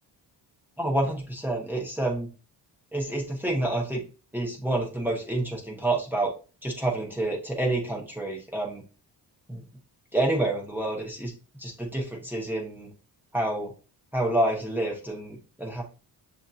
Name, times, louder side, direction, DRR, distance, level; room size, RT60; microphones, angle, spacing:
voice 1, 0.8-2.3 2.9-4.0 4.3-6.3 6.6-8.8 9.5-9.6 10.1-11.3 11.6-12.9 13.3-13.7 14.1-15.8, right 1 dB, 5° right, -2 dB, 1.0 m, -28 dB
6.7 x 2.7 x 2.4 m, 0.34 s
cardioid pair, 115°, 43 cm